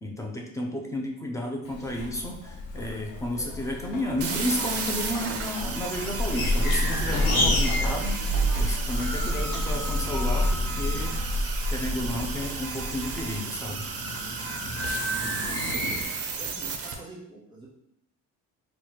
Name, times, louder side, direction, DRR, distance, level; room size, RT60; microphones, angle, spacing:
voice 1, 0.0-8.3 8.6-11.2 11.7-13.9, left 1 dB, 10° left, 0 dB, 0.4 m, -32 dB
Zipper (clothing), 1.6-13.4, left 1 dB, 60° left, 0.7 m, -29 dB
sound 1, 4.2-16.9, right 5 dB, 45° right, 0.5 m, -34 dB
sound 2, 5.7-7.9 8.2-11.3 11.8-16.0, left 1 dB, 80° left, 1.0 m, -32 dB
voice 2, 15.1-16.0 16.4-17.7, right 2 dB, 15° right, -7 dB, 1.1 m, -46 dB
3.0 x 2.4 x 4.2 m, 0.75 s
cardioid pair, 155°, 35 cm